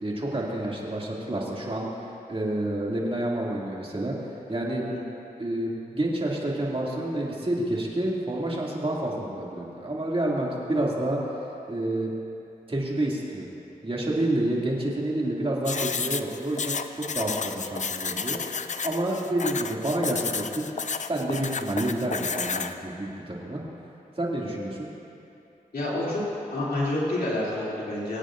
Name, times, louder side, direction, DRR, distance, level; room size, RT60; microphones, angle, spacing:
voice 1, 0.0-1.9 2.3-4.1 4.5-4.8 5.4-11.2 11.7-12.1 12.7-13.5 13.8-20.6 21.1-23.6 24.2-24.9, right 1 dB, 35° right, -4 dB, 2.5 m, -29 dB
sound 1, 15.6-22.7, left 5 dB, 50° left, 0.5 m, -31 dB
voice 2, 25.7-26.2 26.5-28.2, left 1 dB, 80° left, -7 dB, 2.9 m, -28 dB
23.0 x 8.9 x 2.6 m, 2.7 s
cardioid pair, 45°, 16 cm